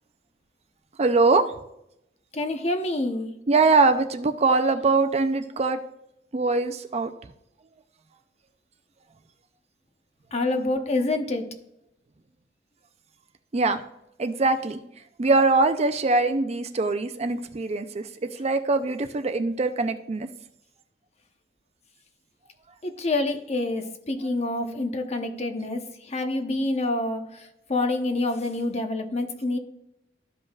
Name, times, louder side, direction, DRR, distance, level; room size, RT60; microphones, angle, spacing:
voice 1, 1.0-1.4 3.5-5.8 6.3-7.1 13.5-13.8 14.2-14.8 15.2-18.0 18.4-20.3, right 3 dB, 35° right, 9 dB, 0.5 m, -22 dB
voice 2, 2.3-3.3 10.3-11.5 22.8-29.6, left 2 dB, 35° left, 5 dB, 0.9 m, -27 dB
13.5 x 5.3 x 2.4 m, 0.82 s
head